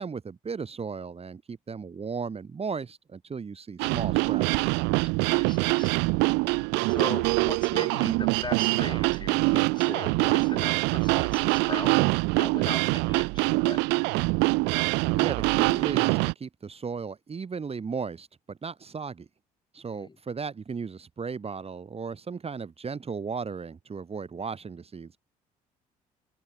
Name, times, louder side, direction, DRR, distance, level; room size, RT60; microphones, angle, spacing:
voice 1, 0.0-4.7 15.0-19.3 19.7-25.2, right 5 dB, 30° right, 1.7 m, -36 dB
sound 1, 3.8-16.3, right 27 dB, 65° right, 0.4 m, -24 dB
voice 2, 5.3-5.9 6.9-12.0 12.3-13.8 19.9-20.2, left 3 dB, 25° left, 3.4 m, -39 dB
open air
hypercardioid pair, 50°, 20 cm